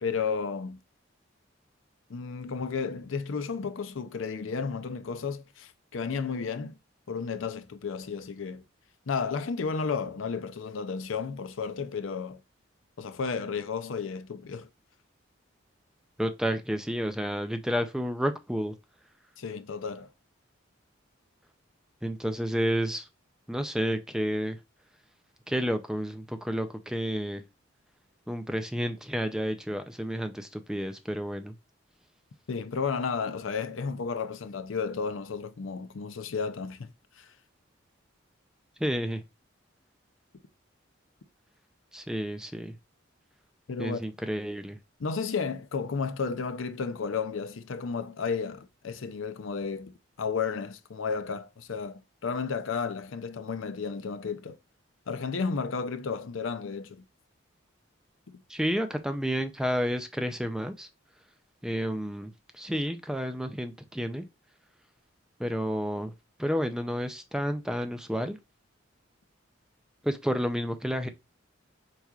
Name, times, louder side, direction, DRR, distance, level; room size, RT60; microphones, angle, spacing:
voice 1, 0.0-0.8 2.1-6.8 7.1-8.6 9.1-12.4 13.0-14.7 19.4-20.1 32.5-36.9 37.2-37.3 43.7-44.0 45.0-54.6 55.1-57.0 58.3-58.4, left 5 dB, 75° left, 0.5 m, -33 dB
voice 2, 16.2-18.7 22.0-23.1 23.5-24.6 25.5-27.4 28.3-31.5 38.8-39.2 41.9-42.8 43.8-44.8 58.5-60.9 61.6-64.2 65.4-66.1 66.4-68.4 70.0-71.1, equal, 5° right, 0.4 m, -30 dB
4.7 x 4.2 x 2.3 m
head